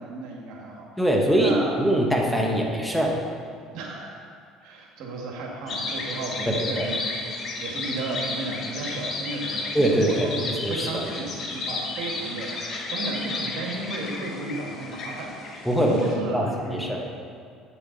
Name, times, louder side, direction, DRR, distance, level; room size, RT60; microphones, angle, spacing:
voice 1, 0.0-0.9 1.4-1.7 3.7-4.2 4.6-16.9, right 2 dB, 70° right, -1 dB, 1.6 m, -33 dB
voice 2, 1.0-3.2 6.5-6.9 9.7-11.0 15.6-16.0 16.3-17.0, right 1 dB, ahead, 0 dB, 1.2 m, -23 dB
sound 1, 5.7-16.1, left 3 dB, 50° left, 1.2 m, -33 dB
8.1 x 7.2 x 4.0 m, 2.2 s
supercardioid pair, 85°, 0 cm